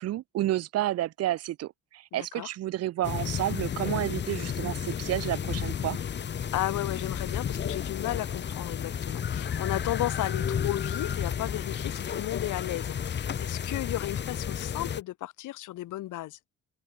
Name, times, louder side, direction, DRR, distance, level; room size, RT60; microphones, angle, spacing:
voice 1, 0.0-6.0, right 14 dB, 55° right, 0.4 m, -30 dB
voice 2, 2.1-2.5 6.5-16.4, left 15 dB, 85° left, 1.9 m, -34 dB
sound 1, 3.0-15.0, left 8 dB, 35° left, 0.7 m, -32 dB
open air
cardioid pair, 90°, 30 cm